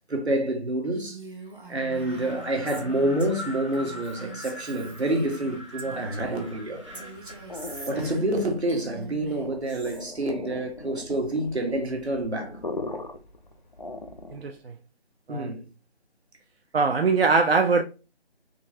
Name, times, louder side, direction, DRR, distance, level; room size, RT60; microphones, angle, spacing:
voice 1, 0.1-1.2 1.7-6.8 7.9-12.6 15.3-15.7, right 1 dB, 85° right, 1.5 m, -28 dB
Female speech woman speaking, 1.1-6.5 6.9-10.0, right 3 dB, 50° right, 1.1 m, -44 dB
Wind, 1.9-8.3, equal, 30° right, 0.7 m, -43 dB
sound 1, 6.7-14.6, left 2 dB, 45° left, 0.5 m, -39 dB
voice 2, 14.3-14.7 15.3-15.5 16.7-17.8, right 4 dB, 65° right, 0.5 m, -22 dB
3.8 x 3.2 x 2.7 m
figure-of-eight pair, 175°, 32 cm